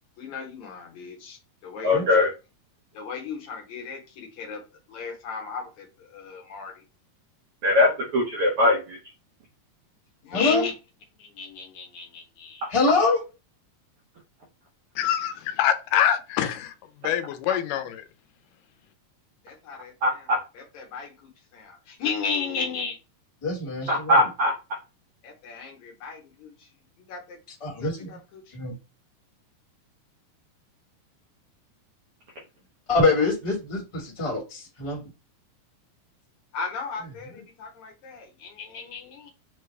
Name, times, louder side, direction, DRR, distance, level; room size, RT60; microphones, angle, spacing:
voice 1, 0.2-2.3 2.9-4.6 4.9-6.8 10.2-10.7 11.2-12.7 19.4-20.3 20.5-23.0 23.8-24.0 25.2-26.7 27.1-27.4 27.7-28.6 36.5-39.3, left 5 dB, 65° left, 2.1 m, -35 dB
voice 2, 1.8-2.3 7.6-9.0 20.0-20.4 23.9-24.5, left 2 dB, 75° right, 1.3 m, -21 dB
voice 3, 10.3-10.6 12.7-13.2 23.4-24.1 27.6-28.2 28.5-28.7 32.9-35.0, left 3 dB, 15° left, 0.9 m, -24 dB
voice 4, 15.0-16.7 17.0-18.0, left 10 dB, 85° left, 2.2 m, -25 dB
6.7 x 2.3 x 3.2 m
omnidirectional pair, 3.8 m